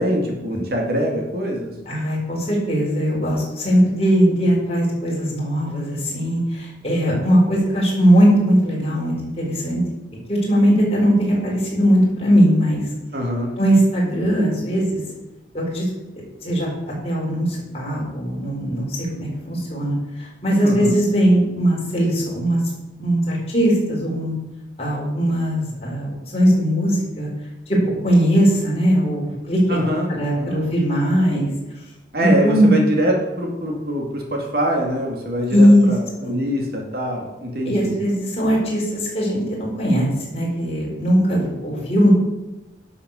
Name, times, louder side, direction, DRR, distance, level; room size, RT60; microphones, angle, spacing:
voice 1, 0.0-1.7 13.1-13.5 20.6-21.0 29.7-30.7 32.1-38.0, equal, 55° right, 0 dB, 2.3 m, -24 dB
voice 2, 1.9-9.8 10.3-12.8 13.6-15.0 15.5-15.9 16.4-16.7 17.0-22.6 23.0-24.3 24.8-27.3 27.7-27.8 28.0-29.8 30.1-31.5 32.2-32.7 35.5-35.9 36.2-36.3 37.6-42.1, equal, 35° left, -4 dB, 4.2 m, -19 dB
11.0 x 6.9 x 6.5 m, 1.0 s
head